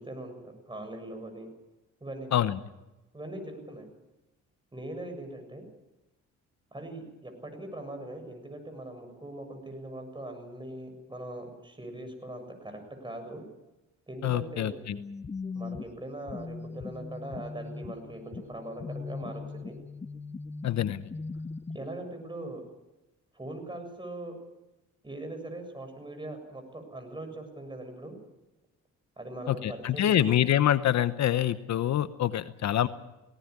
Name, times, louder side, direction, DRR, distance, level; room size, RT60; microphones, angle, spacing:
voice 1, 0.0-1.5 2.0-2.4 3.1-3.9 4.7-5.6 6.7-13.4 14.1-14.8 15.5-19.7 21.7-22.6 23.3-24.4 25.0-28.2 29.2-30.3, right 1 dB, 15° right, 5 dB, 7.2 m, -41 dB
voice 2, 14.2-15.0 20.6-21.0 29.5-32.9, left 11 dB, 65° left, 12 dB, 1.0 m, -26 dB
sound 1, 14.9-21.8, left 4 dB, 20° left, 1.0 m, -39 dB
18.5 x 18.5 x 9.7 m, 0.99 s
cardioid pair, 90°, 30 cm